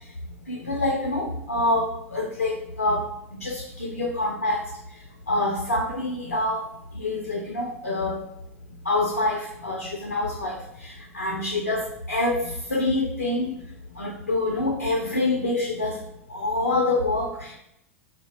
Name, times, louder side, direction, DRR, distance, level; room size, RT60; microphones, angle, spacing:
voice 1, 0.5-3.1 3.4-4.6 5.3-6.7 6.9-8.2 8.9-13.5 14.0-16.0 16.3-17.6, left 2 dB, 85° left, 0 dB, 0.4 m, -26 dB
2.1 x 2.1 x 3.2 m, 0.78 s
figure-of-eight pair, 85°, 8 cm